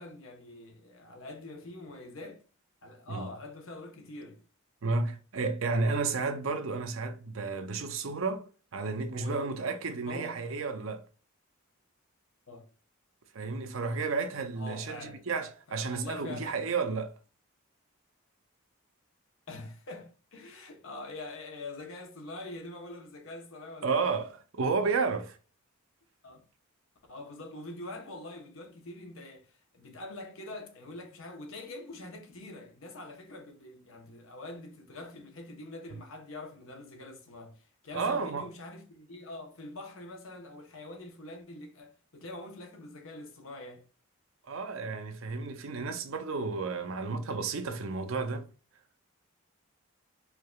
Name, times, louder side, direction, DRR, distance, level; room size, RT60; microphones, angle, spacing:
voice 1, 0.0-2.4 2.8-4.4 9.1-9.5 9.8-10.4 12.5-12.7 14.5-15.2 15.7-16.5 19.5-24.1 26.2-26.4 27.1-43.8, left 2 dB, 65° left, 0.9 m, -44 dB
voice 2, 4.8-11.1 13.3-17.1 23.8-25.4 37.9-38.5 44.4-48.5, right 4 dB, 65° right, 0.6 m, -32 dB
4.7 x 2.8 x 2.3 m
head